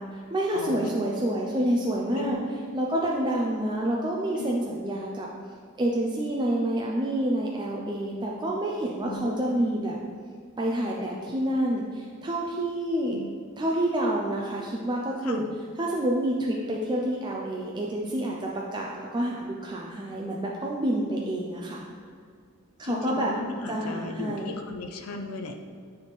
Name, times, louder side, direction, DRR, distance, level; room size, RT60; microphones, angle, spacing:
voice 1, 0.0-2.4 2.7-5.3 5.8-10.0 10.6-13.2 13.6-15.4 15.8-21.8 22.8-23.3 23.7-24.5, right 1 dB, 20° right, -2 dB, 0.4 m, -28 dB
voice 2, 0.5-0.9 2.1-2.5 4.4-4.5 9.0-9.4 13.1-13.3 15.2-15.5 22.8-25.6, left 2 dB, 70° left, 5 dB, 0.5 m, -36 dB
8.9 x 3.5 x 3.2 m, 2.1 s
head